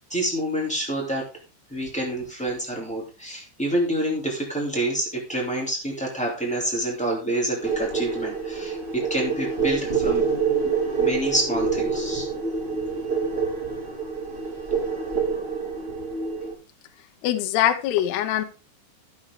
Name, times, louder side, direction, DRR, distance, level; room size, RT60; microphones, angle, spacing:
voice 1, 0.1-1.2 1.7-10.2 11.0-12.3, right 1 dB, 10° left, -2 dB, 0.3 m, -27 dB
sound 1, 7.6-16.5, right 5 dB, 35° right, 0.9 m, -27 dB
voice 2, 17.2-18.4, left 12 dB, 75° left, 8 dB, 2.7 m, -22 dB
15.0 x 6.3 x 3.6 m, 0.34 s
omnidirectional pair, 5.5 m